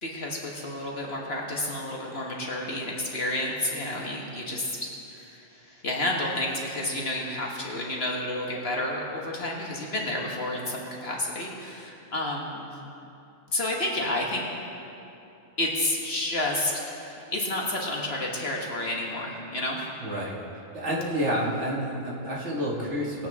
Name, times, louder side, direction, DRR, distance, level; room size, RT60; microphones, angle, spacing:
voice 1, 0.0-12.7 13.5-14.4 15.6-19.9, left 1 dB, 55° left, -2 dB, 1.6 m, -30 dB
voice 2, 20.0-20.4 20.7-23.3, equal, 65° right, -4 dB, 2.3 m, -29 dB
20.0 x 8.3 x 3.6 m, 2.8 s
omnidirectional pair, 1.3 m